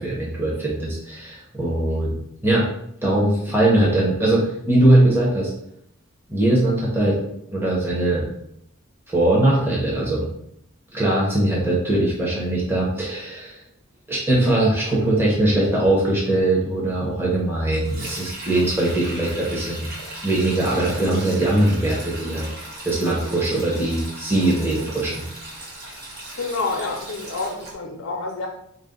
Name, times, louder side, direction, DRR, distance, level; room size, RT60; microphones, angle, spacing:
voice 1, 0.0-2.1 2.4-2.7 3.0-5.5 6.3-7.2 7.5-8.2 9.1-10.3 10.9-13.6 14.1-19.9 20.2-22.5 22.8-25.2, right 1 dB, 10° right, -5 dB, 0.8 m, -21 dB
Sink (filling or washing), 17.7-27.7, right 1 dB, 55° right, 1.0 m, -37 dB
voice 2, 26.4-28.5, left 3 dB, 80° left, 0 dB, 0.5 m, -28 dB
4.0 x 2.1 x 3.8 m, 0.74 s
head